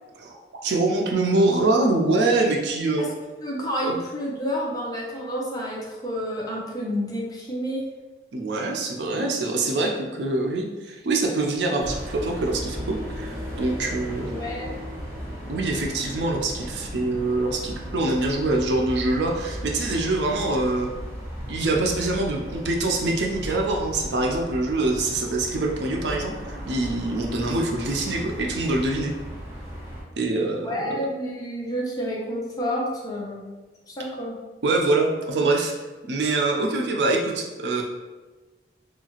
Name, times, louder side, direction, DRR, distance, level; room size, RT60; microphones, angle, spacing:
voice 1, 0.2-3.0 3.8-4.0 8.3-14.3 15.5-20.9 21.5-29.1 30.2-31.0 34.6-35.7 36.1-37.8, right 2 dB, 75° right, 1 dB, 0.5 m, -24 dB
voice 2, 3.4-7.8 14.3-14.7 30.6-33.5 33.9-34.4, equal, 20° left, -3 dB, 0.5 m, -29 dB
sound 1, 11.8-30.0, equal, 15° right, 0.9 m, -36 dB
2.8 x 2.4 x 2.9 m, 1.2 s
head